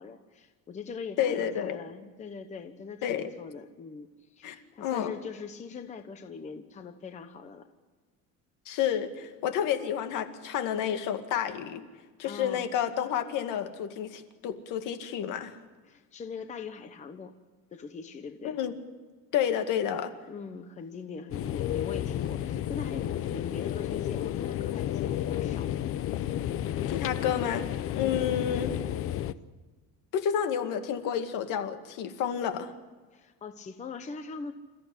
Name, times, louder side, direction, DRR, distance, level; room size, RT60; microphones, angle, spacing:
voice 1, 0.0-7.6 12.2-12.7 15.9-17.3 17.7-18.6 20.3-25.7 28.0-28.4 33.1-34.5, left 5 dB, 20° left, 7 dB, 1.0 m, -42 dB
voice 2, 1.2-1.8 3.0-3.3 4.4-4.5 4.8-5.2 8.7-11.8 12.2-15.5 18.4-18.7 19.3-20.1 26.9-27.6 27.9-28.7 30.1-32.7, left 9 dB, 60° left, 7 dB, 2.2 m, -30 dB
sound 1, 21.3-29.3, left 11 dB, 40° left, 0.7 m, -32 dB
28.0 x 15.0 x 9.9 m, 1.3 s
cardioid pair, 180°, 35 cm